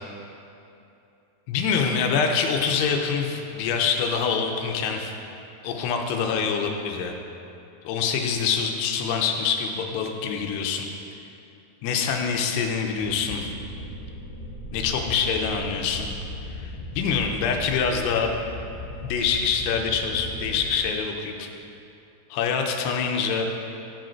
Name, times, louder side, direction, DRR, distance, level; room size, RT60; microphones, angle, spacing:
voice 1, 1.5-5.1 5.6-7.1 7.8-10.9 11.8-13.5 14.7-16.1 16.6-18.3 19.0-21.5 22.3-23.5, left 6 dB, 80° left, 3 dB, 2.7 m, -25 dB
sound 1, 12.9-20.7, left 1 dB, 35° right, 2.1 m, -37 dB
13.0 x 5.1 x 4.5 m, 2.8 s
omnidirectional pair, 4.9 m